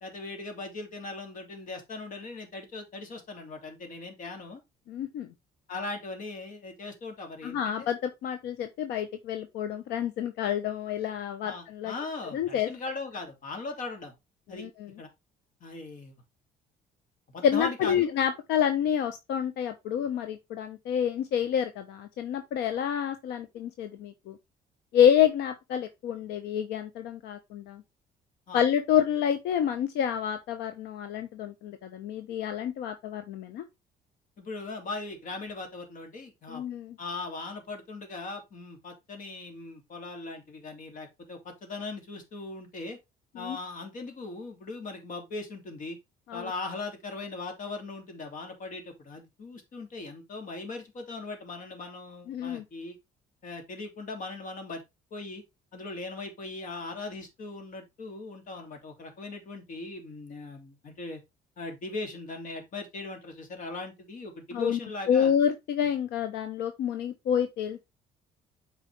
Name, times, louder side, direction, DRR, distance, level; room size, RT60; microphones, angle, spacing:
voice 1, 0.0-4.6 5.7-7.9 11.4-14.1 14.5-14.7 15.0-15.1 15.6-16.2 17.3-18.1 28.5-28.6 34.4-36.6 37.0-43.0 43.3-46.0 46.3-53.0 53.4-54.8 55.1-55.4 55.7-61.2 61.6-65.3, left 3 dB, 50° left, 2.8 m, -39 dB
voice 2, 4.9-5.3 7.4-11.9 12.3-12.7 14.5-14.9 17.4-24.4 24.9-27.8 28.5-33.6 36.5-37.0 43.3-43.6 46.3-46.5 52.3-52.6 64.5-64.8 65.1-67.8, left 9 dB, 80° left, 0.9 m, -28 dB
8.5 x 5.0 x 3.4 m
cardioid pair, 110°, 17 cm